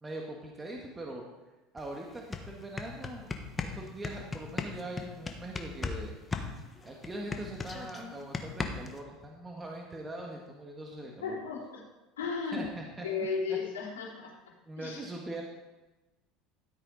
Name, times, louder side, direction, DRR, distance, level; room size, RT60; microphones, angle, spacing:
voice 1, 0.0-1.2 1.7-3.3 3.6-6.2 6.8-11.4 12.5-13.1 13.5-13.6 14.7-15.4, right 1 dB, 20° right, 0 dB, 1.8 m, -42 dB
sound 1, 1.8-1.9 2.2-6.0 6.3-9.0, left 4 dB, 25° left, 1.5 m, -36 dB
voice 2, 11.2-11.8 12.2-12.6 13.0-14.3 14.8-15.0, left 5 dB, 90° left, -6 dB, 3.3 m, -34 dB
13.5 x 8.2 x 4.1 m, 1.1 s
hypercardioid pair, 80°, 0 cm